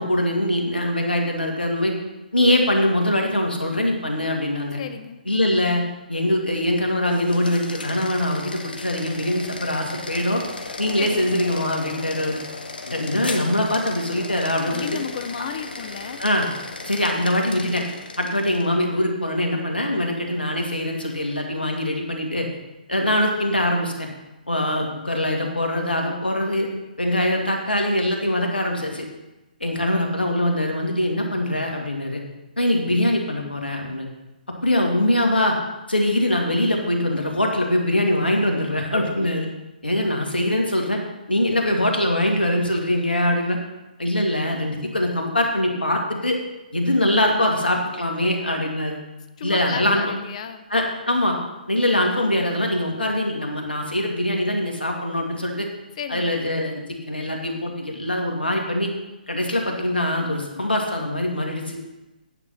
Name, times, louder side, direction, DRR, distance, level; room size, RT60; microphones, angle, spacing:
voice 1, 0.0-1.9 2.3-4.8 5.3-5.8 6.1-10.4 10.8-12.4 12.9-14.9 16.2-16.5 16.9-17.8 18.2-22.5 22.9-24.1 24.5-26.7 27.0-29.1 29.6-32.2 32.6-34.1 34.6-35.6 35.9-39.5 39.8-41.0 41.3-43.6 44.0-46.4 46.7-49.0 49.4-50.1 50.7-51.4 51.7-55.7 56.1-56.8 57.1-58.9 59.3-61.8, left 1 dB, 90° left, 1 dB, 2.1 m, -23 dB
voice 2, 4.8-5.2 11.0-11.3 14.7-16.2 49.4-50.7 56.0-56.4, left 7 dB, 45° left, 10 dB, 0.9 m, -33 dB
sound 1, 7.0-18.7, left 3 dB, 70° left, 1.2 m, -36 dB
9.7 x 5.7 x 6.5 m, 1.0 s
figure-of-eight pair, 135°, 5 cm